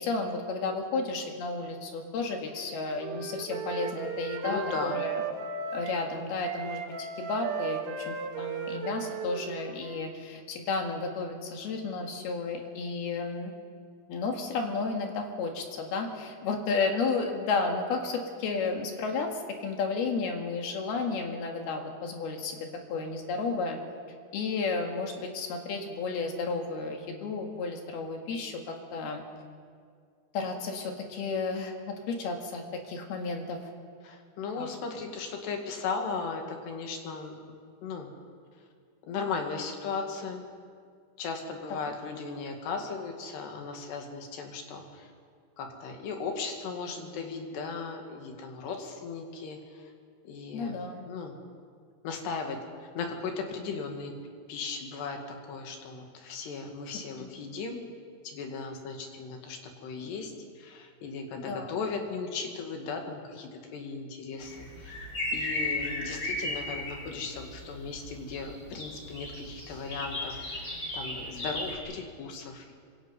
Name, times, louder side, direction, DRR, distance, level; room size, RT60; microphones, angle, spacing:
voice 1, 0.0-5.2 5.7-6.8 7.2-13.5 14.1-23.8 24.3-29.2 30.3-33.6 34.6-34.7 50.5-51.0 57.2-57.3 61.5-61.8, left 4 dB, 70° left, 2 dB, 3.8 m, -32 dB
Wind instrument woodwind instrument, 2.5-6.1 6.4-10.2, right 6 dB, 85° right, 3.7 m, -36 dB
voice 2, 4.4-5.0 34.0-37.4 37.8-38.1 39.0-40.4 41.2-45.1 45.6-49.9 50.2-50.8 51.1-51.4 52.0-54.1 54.5-57.8 58.2-65.0 65.3-72.8, left 4 dB, 90° left, 3 dB, 4.3 m, -37 dB
sound 1, 64.4-71.8, left 2 dB, 30° left, 5.4 m, -36 dB
26.5 x 25.0 x 5.6 m, 2.1 s
omnidirectional pair, 4.7 m